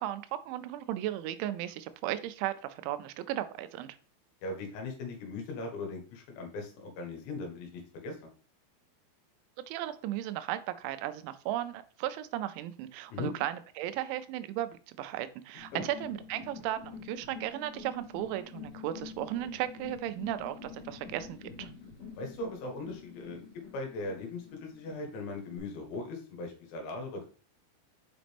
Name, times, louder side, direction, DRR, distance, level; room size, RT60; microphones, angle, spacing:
voice 1, 0.0-4.0 9.7-21.7, right 13 dB, 90° right, 11 dB, 3.0 m, -35 dB
voice 2, 4.4-8.3 13.1-13.3 15.7-15.9 22.2-23.4 23.7-27.3, left 2 dB, 75° left, 2 dB, 3.7 m, -39 dB
sound 1, 15.6-25.6, left 5 dB, 60° left, 3.4 m, -48 dB
7.5 x 5.0 x 3.4 m, 0.42 s
omnidirectional pair, 5.3 m